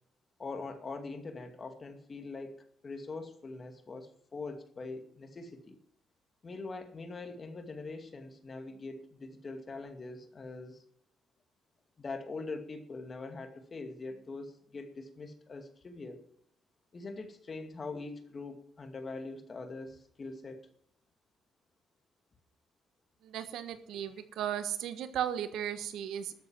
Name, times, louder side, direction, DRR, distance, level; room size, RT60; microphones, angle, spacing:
voice 1, 0.4-5.8 6.4-10.8 12.0-16.2 16.9-20.7, left 3 dB, 35° left, 6 dB, 2.4 m, -43 dB
voice 2, 23.2-26.3, right 10 dB, 80° right, 10 dB, 1.3 m, -36 dB
13.0 x 8.1 x 7.5 m, 0.65 s
cardioid pair, 90°, 0 cm